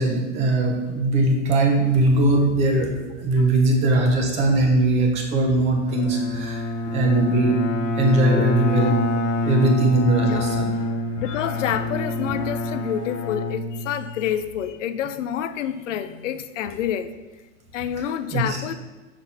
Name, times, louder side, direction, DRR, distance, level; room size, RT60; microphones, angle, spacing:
voice 1, 0.0-6.6 6.9-7.6 8.0-9.0 9.4-10.7 18.3-18.6, right 2 dB, 20° right, 2 dB, 0.6 m, -20 dB
Bowed string instrument, 5.9-14.3, left 2 dB, 20° left, 0.7 m, -26 dB
voice 2, 10.2-10.5 11.2-17.1 17.7-18.8, left 9 dB, 70° left, 11 dB, 0.6 m, -28 dB
6.1 x 4.1 x 4.1 m, 1.2 s
supercardioid pair, 150°, 38 cm